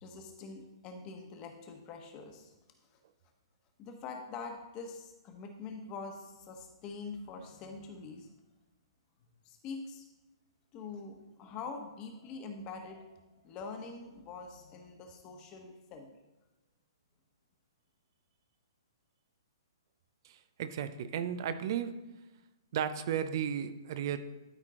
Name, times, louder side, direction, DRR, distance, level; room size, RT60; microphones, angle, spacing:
voice 1, 0.0-2.5 2.8-3.0 3.8-8.3 9.4-10.0 10.7-16.2, left 4 dB, 30° left, 4 dB, 1.4 m, -45 dB
voice 2, 20.2-21.9 22.7-24.2, right 9 dB, 50° right, 11 dB, 0.7 m, -34 dB
12.5 x 4.5 x 3.8 m, 1.0 s
hypercardioid pair, 130°, 3 cm